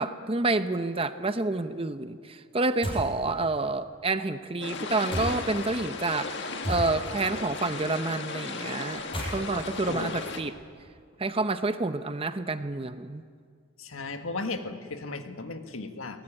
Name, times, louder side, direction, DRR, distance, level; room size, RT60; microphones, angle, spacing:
voice 1, 0.0-9.1 9.3-10.5 11.2-13.2, right 2 dB, 25° right, 10 dB, 0.7 m, -29 dB
sound 1, 2.8-3.2 5.1-5.6 6.6-7.3 8.9-10.9, equal, 25° left, 6.2 m, -35 dB
sound 2, 4.6-10.4, left 4 dB, 55° left, 1.7 m, -36 dB
voice 2, 9.9-10.2 13.8-16.2, left 3 dB, 70° left, 7 dB, 1.7 m, -36 dB
22.0 x 19.0 x 9.9 m, 2.1 s
head